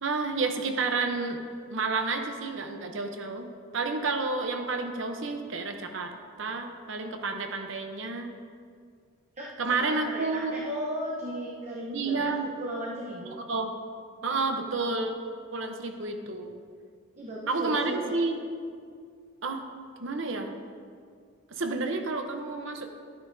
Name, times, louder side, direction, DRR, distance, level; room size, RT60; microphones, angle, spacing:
voice 1, 0.0-1.4 1.7-8.3 9.6-10.5 11.9-12.5 13.5-13.7 14.2-15.2 15.5-16.6 17.5-18.4 19.4-19.6 20.0-20.5 21.5-22.9, right 3 dB, 65° right, 5 dB, 0.8 m, -30 dB
voice 2, 9.4-13.4 17.2-18.2, equal, 35° right, -4 dB, 0.9 m, -36 dB
12.0 x 9.7 x 2.7 m, 2.1 s
head